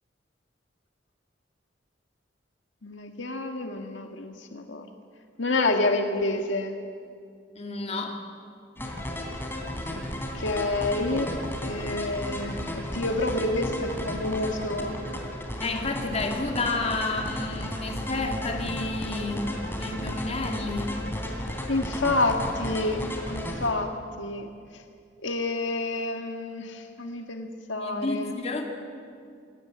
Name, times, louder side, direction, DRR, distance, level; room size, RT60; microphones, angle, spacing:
voice 1, 2.8-4.8 5.4-6.8 10.3-15.0 21.7-24.5 25.2-28.3, left 2 dB, 80° left, 4 dB, 1.7 m, -28 dB
voice 2, 7.5-8.2 15.6-21.0 27.8-28.7, left 3 dB, 35° left, 3 dB, 2.4 m, -31 dB
sound 1, 8.8-23.7, left 1 dB, 10° left, 3.3 m, -34 dB
21.5 x 19.5 x 8.6 m, 2.3 s
head